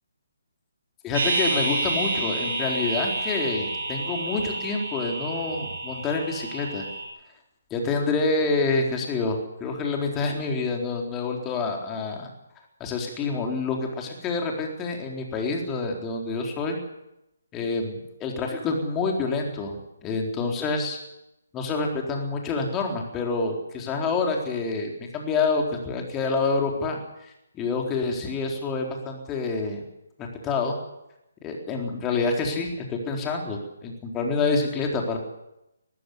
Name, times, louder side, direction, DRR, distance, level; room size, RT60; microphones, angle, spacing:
voice 1, 1.0-6.8 7.7-12.3 12.8-16.8 17.5-17.9 18.2-21.0 21.5-27.0 27.6-29.8 30.4-30.8 31.4-35.2, left 3 dB, 15° left, 1 dB, 4.1 m, -27 dB
sound 1, 1.1-7.1, right 2 dB, 55° right, 7.7 m, -29 dB
20.0 x 15.0 x 9.7 m, 0.89 s
figure-of-eight pair, 140°, 0 cm